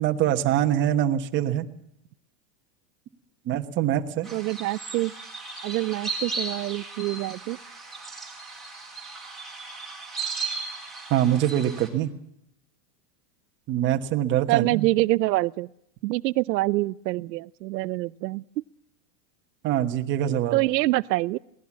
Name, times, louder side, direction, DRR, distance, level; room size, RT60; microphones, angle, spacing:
voice 1, 0.0-1.7 3.4-4.3 11.1-12.1 13.7-14.9 19.6-20.6, right 11 dB, 25° right, 5 dB, 1.2 m, -24 dB
sound 1, 4.2-11.9, right 3 dB, ahead, 4.0 m, -36 dB
voice 2, 4.3-5.1 5.6-7.6 14.5-15.7 16.0-18.4 20.5-21.4, right 19 dB, 80° right, 17 dB, 0.7 m, -25 dB
23.0 x 18.0 x 7.3 m, 0.76 s
supercardioid pair, 170°, 49 cm